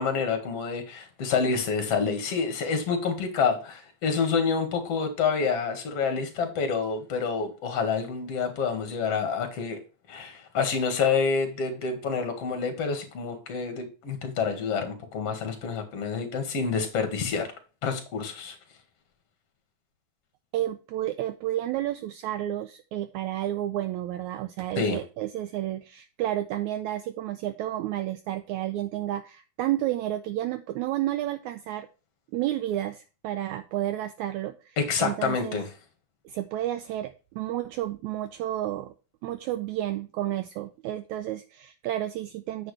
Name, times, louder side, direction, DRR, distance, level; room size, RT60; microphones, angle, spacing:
voice 1, 0.0-9.8 10.1-17.5 17.8-18.6 24.8-25.0 34.8-35.7, left 5 dB, 50° left, 2.6 m, -28 dB
voice 2, 20.5-31.9 32.3-35.6 36.3-38.9 39.2-42.7, right 13 dB, 80° right, 1.7 m, -31 dB
9.3 x 7.0 x 3.3 m
omnidirectional pair, 3.8 m